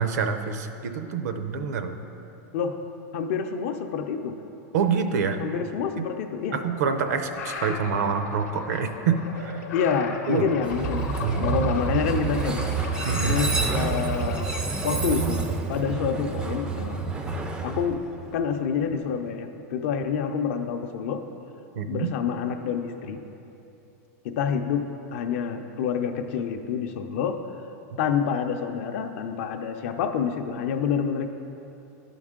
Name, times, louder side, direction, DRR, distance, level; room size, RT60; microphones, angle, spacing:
voice 1, 0.0-1.9 4.7-5.4 6.0-6.1 6.5-9.6 10.3-10.5 11.2-11.5 13.1-13.4 21.8-22.1, right 6 dB, 80° right, 8 dB, 0.6 m, -26 dB
voice 2, 3.1-4.3 5.4-6.6 9.7-11.1 11.4-12.6 13.2-14.6 14.8-17.0 17.6-18.0 18.3-21.2 21.9-23.2 24.2-24.8 25.1-27.4 28.0-31.3, left 7 dB, 50° left, 6 dB, 0.5 m, -27 dB
sound 1, 6.6-14.6, left 5 dB, 70° left, 0.8 m, -37 dB
Train, 10.6-18.6, right 4 dB, 10° right, 0.3 m, -28 dB
11.0 x 5.4 x 3.7 m, 2.9 s
supercardioid pair, 170°, 9 cm